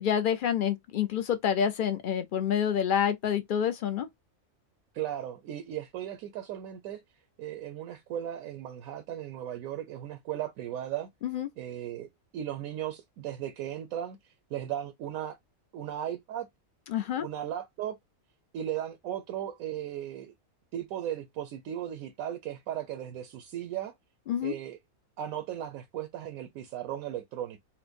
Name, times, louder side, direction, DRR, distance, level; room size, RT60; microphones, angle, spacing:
voice 1, 0.0-4.1 11.2-11.5 16.9-17.3 24.3-24.6, left 8 dB, 55° left, 0.5 m, -28 dB
voice 2, 4.9-7.0 7.4-11.1 11.6-15.4 15.7-16.5 17.1-18.0 18.5-20.3 20.7-23.9 24.4-24.8 25.2-27.6, right 11 dB, 80° right, 1.0 m, -36 dB
4.3 x 2.1 x 2.5 m
omnidirectional pair, 1.5 m